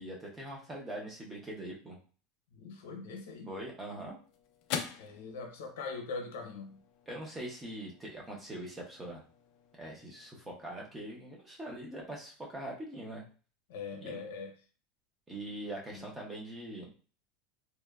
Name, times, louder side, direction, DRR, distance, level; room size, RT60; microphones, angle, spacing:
voice 1, 0.0-2.0 3.5-4.2 7.1-9.2 9.8-13.2 14.0-14.2 15.3-16.9, right 1 dB, 10° right, -2 dB, 0.6 m, -42 dB
voice 2, 2.5-3.5 5.0-6.8 13.7-14.5 15.9-16.1, left 4 dB, 85° left, 4 dB, 0.7 m, -42 dB
sound 1, 3.4-12.0, left 8 dB, 45° left, 0.3 m, -47 dB
2.9 x 2.1 x 2.3 m, 0.38 s
supercardioid pair, 170°, 0 cm